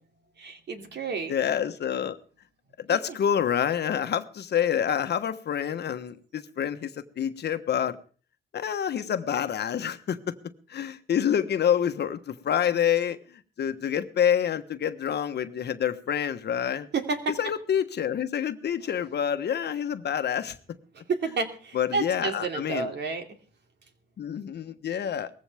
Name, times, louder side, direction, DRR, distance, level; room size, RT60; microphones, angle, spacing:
voice 1, 0.4-1.3 3.1-3.2 16.9-17.3 21.1-23.2, right 4 dB, 60° right, 5 dB, 2.9 m, -30 dB
voice 2, 1.3-2.2 2.8-8.0 8.5-10.3 10.7-13.2 13.6-16.9 17.4-20.6 21.7-22.9 24.2-25.3, left 9 dB, 55° left, 9 dB, 1.2 m, -27 dB
19.0 x 15.5 x 3.6 m, 0.40 s
cardioid pair, 90°, 20 cm